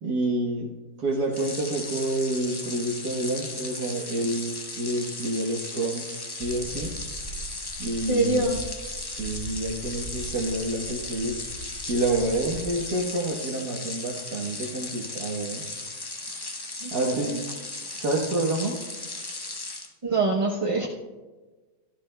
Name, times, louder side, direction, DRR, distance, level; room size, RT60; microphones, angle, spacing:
voice 1, 0.0-0.7 1.0-6.9 7.8-8.5 9.1-11.4 11.9-15.6 16.4-16.5 16.9-17.3 18.0-18.8, right 2 dB, 80° right, -2 dB, 1.7 m, -28 dB
sound 1, 1.3-19.9, left 2 dB, 30° left, 0.4 m, -36 dB
sound 2, 6.4-12.8, right 1 dB, 55° right, 2.3 m, -41 dB
voice 2, 8.1-8.6 16.8-17.4 20.0-20.9, right 2 dB, 35° right, -2 dB, 0.5 m, -25 dB
18.0 x 12.0 x 2.2 m, 1.3 s
omnidirectional pair, 1.7 m